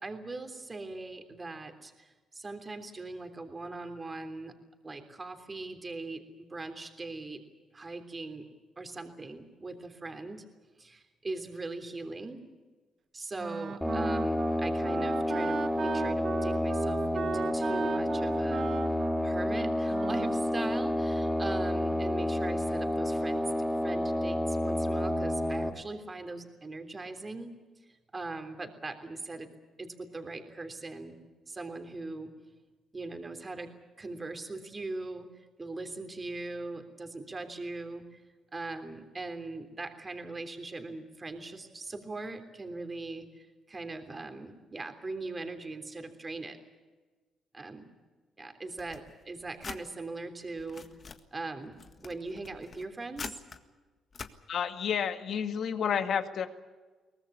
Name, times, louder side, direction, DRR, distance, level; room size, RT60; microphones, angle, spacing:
voice 1, 0.0-4.5 4.8-6.2 6.5-7.4 7.7-8.4 8.8-10.4 10.8-12.4 13.1-18.7 19.2-23.5 23.8-27.5 28.1-29.5 29.8-31.2 31.5-32.3 32.9-33.7 34.0-35.3 35.6-38.2 38.5-46.6 47.5-47.9 48.4-50.8 51.3-53.4, right 3 dB, 25° right, 7 dB, 3.3 m, -40 dB
Wind instrument woodwind instrument, 13.4-20.5, right 7 dB, 55° right, 1.2 m, -38 dB
sound 1, 13.8-25.7, left 1 dB, 5° left, 3.1 m, -30 dB
sound 2, 48.8-49.8 50.4-51.2 51.7-53.6 54.1-54.3, left 5 dB, 40° left, 1.7 m, -44 dB
voice 2, 54.5-56.5, left 7 dB, 65° left, 8 dB, 1.9 m, -30 dB
23.0 x 19.0 x 8.6 m, 1.3 s
cardioid pair, 90°, 0 cm